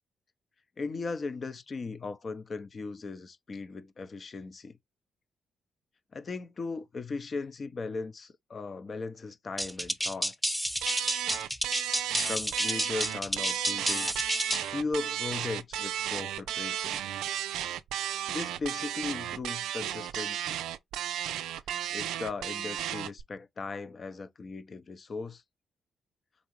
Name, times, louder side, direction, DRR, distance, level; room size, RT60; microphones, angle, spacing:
voice 1, 0.8-4.8 6.1-10.3 12.0-14.1 14.7-17.0 18.3-20.6 21.9-25.4, left 4 dB, 45° left, 0.7 m, -37 dB
sound 1, 9.6-14.7, equal, ahead, 1.0 m, -30 dB
sound 2, 10.8-23.2, right 11 dB, 75° right, 0.3 m, -34 dB
4.1 x 3.5 x 3.0 m
hypercardioid pair, 45°, 0 cm